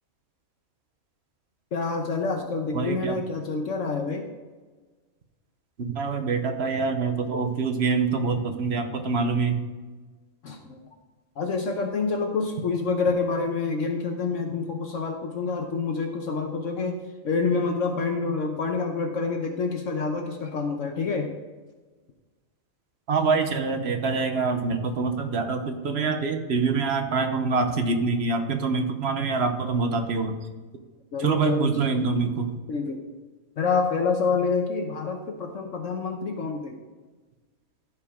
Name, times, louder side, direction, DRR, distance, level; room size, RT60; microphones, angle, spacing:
voice 1, 1.7-4.2 10.4-10.8 11.4-17.0 17.2-21.3 31.1-31.7 32.7-33.0 33.6-36.8, left 4 dB, 65° left, 3 dB, 1.2 m, -27 dB
voice 2, 2.7-3.2 5.8-9.6 23.1-30.3 31.2-32.5, right 4 dB, 55° right, 7 dB, 1.0 m, -25 dB
15.0 x 5.1 x 3.6 m, 1.3 s
omnidirectional pair, 1.5 m